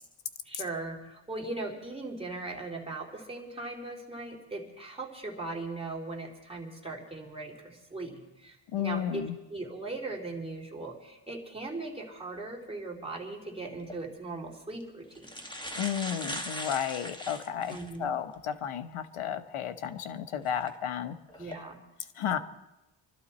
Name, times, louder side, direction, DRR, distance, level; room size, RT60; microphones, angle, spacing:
voice 1, 0.4-9.2 9.5-15.4 17.7-18.2 21.4-21.8, right 2 dB, 10° right, -1 dB, 3.4 m, -39 dB
voice 2, 8.7-9.3 15.8-21.2 22.2-22.4, left 9 dB, 85° left, 9 dB, 1.1 m, -33 dB
sound 1, 13.8-14.0 14.8-14.9 15.1-18.0 18.5-18.6 20.5-20.7 21.3-21.6, equal, 10° left, 1.6 m, -39 dB
25.5 x 12.5 x 4.3 m, 0.96 s
cardioid pair, 95°, 49 cm